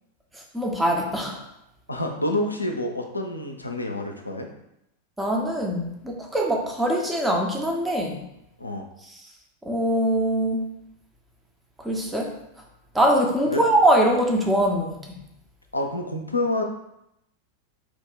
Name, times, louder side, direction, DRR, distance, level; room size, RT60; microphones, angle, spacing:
voice 1, 0.5-1.4 5.2-8.2 9.6-10.6 11.8-12.3 12.9-15.2, right 1 dB, 10° right, 0 dB, 0.5 m, -22 dB
voice 2, 1.9-4.5 8.6-8.9 13.5-13.6 15.7-16.6, left 1 dB, 85° left, 3 dB, 0.4 m, -28 dB
2.5 x 2.1 x 3.7 m, 0.82 s
figure-of-eight pair, 90°, 0 cm